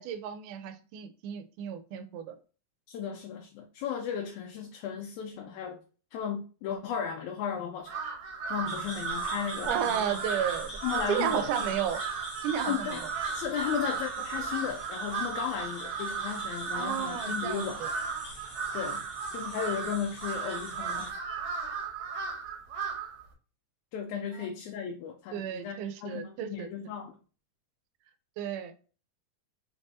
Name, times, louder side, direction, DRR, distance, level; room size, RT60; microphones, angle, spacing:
voice 1, 0.0-2.4 9.6-10.7 11.1-12.0 12.4-13.1 16.7-17.9 24.3-24.5 25.3-26.7 28.4-28.9, right 9 dB, 85° right, 2.1 m, -33 dB
voice 2, 2.9-5.8 6.1-8.0 8.5-10.1 10.8-11.5 12.7-13.0 13.3-17.8 18.7-19.0 19.3-21.2 23.9-27.2, left 8 dB, 80° left, 1.8 m, -35 dB
Crow, 7.8-23.2, right 5 dB, 65° right, 1.9 m, -35 dB
sound 1, 8.7-21.1, left 1 dB, 40° left, 1.3 m, -45 dB
5.2 x 3.4 x 2.7 m
omnidirectional pair, 3.6 m